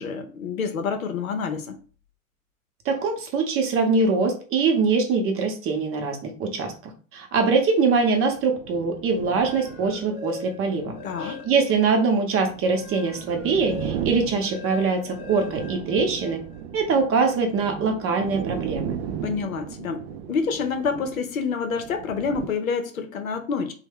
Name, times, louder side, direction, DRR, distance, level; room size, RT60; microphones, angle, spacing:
voice 1, 0.0-1.8 11.0-11.4 19.2-23.7, left 5 dB, 75° left, 0.7 m, -28 dB
voice 2, 2.8-6.7 7.1-16.4 16.7-19.0, right 4 dB, 30° right, 0.8 m, -23 dB
sound 1, 8.2-22.5, right 9 dB, 50° right, 0.4 m, -36 dB
sound 2, 9.2-11.8 12.3-16.6, left 5 dB, 25° left, 0.8 m, -41 dB
3.0 x 2.2 x 3.5 m
figure-of-eight pair, 85°, 42 cm